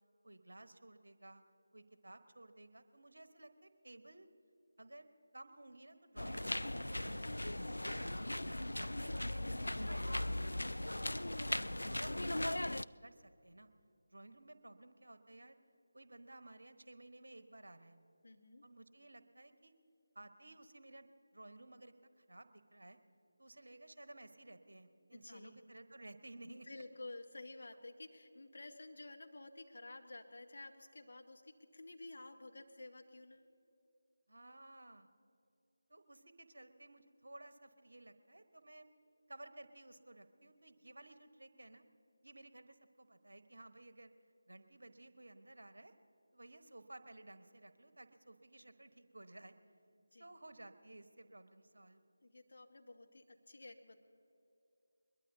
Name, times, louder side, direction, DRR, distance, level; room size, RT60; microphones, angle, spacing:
voice 1, 0.2-1.4 1.7-4.3 4.8-5.1 5.3-7.4 8.3-8.5 8.8-11.2 11.5-13.7 14.1-15.6 15.9-18.0 18.6-19.7 20.1-23.0 23.4-26.7 34.3-35.1 35.9-38.9 39.3-41.8 42.2-44.1 44.5-45.9 46.3-49.5 50.2-52.0, right 2 dB, 65° right, 9 dB, 1.1 m, -56 dB
sound 1, 6.2-12.8, left 1 dB, 75° left, 0.3 m, -38 dB
voice 2, 7.8-8.3 18.2-18.6 25.1-25.6 26.4-33.5 49.9-50.4 52.2-54.0, left 2 dB, 55° left, 4 dB, 1.3 m, -52 dB
22.0 x 21.5 x 2.7 m, 2.8 s
figure-of-eight pair, 160°, 0 cm